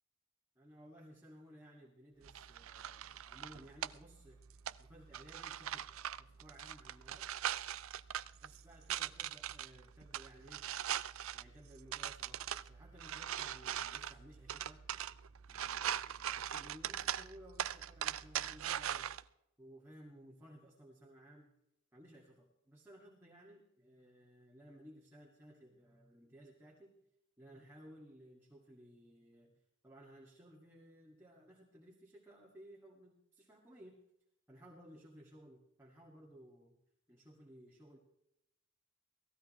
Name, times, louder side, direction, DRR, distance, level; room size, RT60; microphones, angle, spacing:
voice 1, 0.6-4.4 4.8-7.3 8.4-10.7 11.3-14.9 15.5-19.1 19.6-21.5 21.9-26.9 27.4-34.0 34.5-36.8 37.1-38.0, equal, 10° right, -4 dB, 2.3 m, -58 dB
sound 1, 2.2-19.2, right 10 dB, 80° right, 0.5 m, -42 dB
18.5 x 15.5 x 3.2 m, 0.81 s
head